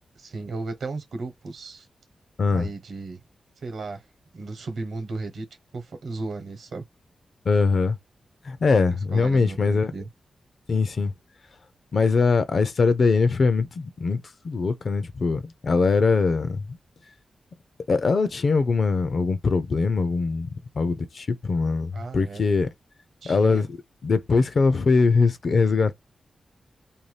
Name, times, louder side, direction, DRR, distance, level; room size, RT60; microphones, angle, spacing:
voice 1, 0.1-1.9 2.5-3.2 3.6-4.0 4.3-5.4 5.7-6.8 9.1-10.1 21.9-22.4 23.2-23.6, right 3 dB, 70° right, 1.0 m, -35 dB
voice 2, 7.5-8.0 8.4-9.9 10.7-11.1 11.9-16.8 17.9-20.5 20.8-22.7 23.2-23.7 24.0-26.0, left 4 dB, 45° left, 0.4 m, -22 dB
2.6 x 2.2 x 3.2 m
wide cardioid pair, 170°, 0 cm